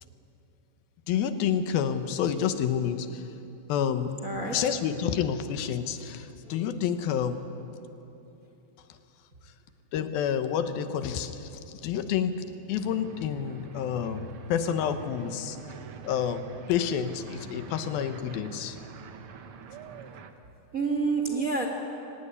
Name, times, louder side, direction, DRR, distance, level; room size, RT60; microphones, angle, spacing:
voice 1, 1.1-3.3 3.7-4.2 4.5-7.5 9.9-15.6 16.0-18.8, left 8 dB, 85° left, 10 dB, 2.9 m, -29 dB
voice 2, 4.2-4.7 20.7-21.7, right 4 dB, 35° right, 2 dB, 1.4 m, -28 dB
sound 1, 12.8-20.3, right 5 dB, 85° right, 1.2 m, -45 dB
23.5 x 18.5 x 9.9 m, 3.0 s
omnidirectional pair, 4.1 m